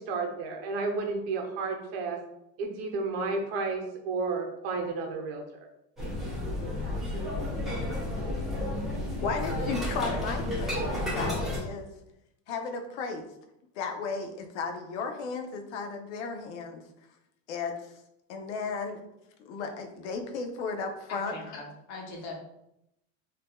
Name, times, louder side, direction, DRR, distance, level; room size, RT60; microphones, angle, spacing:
voice 1, 0.1-2.2 2.6-5.7, right 3 dB, 65° right, 3 dB, 0.8 m, -32 dB
sound 1, 6.0-11.6, left 1 dB, ahead, 0.8 m, -31 dB
voice 2, 9.1-11.9 12.5-13.3 13.8-16.8 17.5-17.7 18.3-19.0 19.5-21.4, left 4 dB, 90° left, 5 dB, 0.7 m, -34 dB
voice 3, 21.1-22.3, left 3 dB, 55° left, 1 dB, 0.9 m, -41 dB
3.5 x 2.7 x 2.2 m, 0.83 s
supercardioid pair, 155°, 34 cm